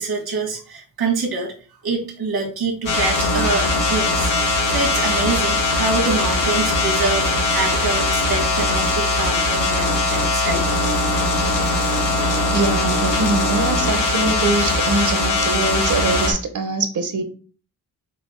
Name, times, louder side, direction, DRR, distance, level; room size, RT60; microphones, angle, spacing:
voice 1, 0.0-1.5 1.8-4.3 4.7-10.6, right 3 dB, 90° right, 0 dB, 1.8 m, -25 dB
sound 1, 2.9-16.3, left 2 dB, 60° left, 1.7 m, -20 dB
voice 2, 12.5-17.2, right 3 dB, 55° right, 7 dB, 0.9 m, -23 dB
6.0 x 2.3 x 3.7 m, 0.39 s
wide cardioid pair, 155°, 36 cm